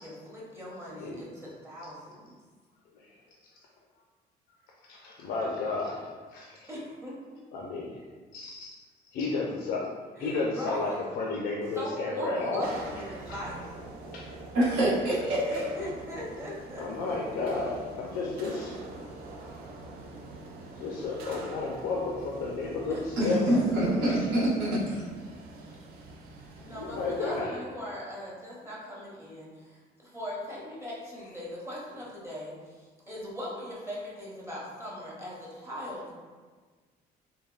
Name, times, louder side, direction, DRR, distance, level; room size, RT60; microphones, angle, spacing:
voice 1, 0.0-2.3 6.7-7.2 10.2-11.0 11.7-13.9 15.5-16.9 22.9-23.6 26.6-36.1, equal, 15° right, -6 dB, 0.8 m, -40 dB
voice 2, 4.9-6.7 7.5-7.9 8.3-8.7 9.1-9.9 10.2-12.7 13.3-13.4 14.1-14.3 16.8-18.8 20.8-24.3 26.7-27.6, left 3 dB, 75° left, -2 dB, 0.4 m, -32 dB
sound 1, 12.6-27.4, right 2 dB, 65° right, 0.4 m, -45 dB
voice 3, 14.5-15.6 23.2-25.0, right 1 dB, 80° right, -7 dB, 1.0 m, -25 dB
3.3 x 2.1 x 2.3 m, 1.4 s
cardioid pair, 110°, 17 cm